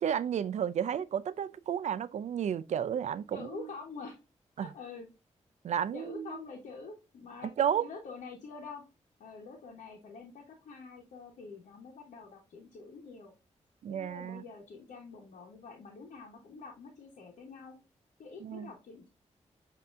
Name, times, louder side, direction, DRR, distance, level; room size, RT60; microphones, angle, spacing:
voice 1, 0.0-3.7 4.6-4.7 5.6-6.4 7.6-7.9 13.8-14.4 18.4-18.7, right 9 dB, 65° right, 0.4 m, -32 dB
voice 2, 3.3-4.2 4.6-5.1 5.9-7.5 7.8-8.8 9.2-13.3 13.9-17.8 18.2-19.1, left 4 dB, 85° left, 1.0 m, -46 dB
7.6 x 2.7 x 2.4 m
cardioid pair, 70°, 13 cm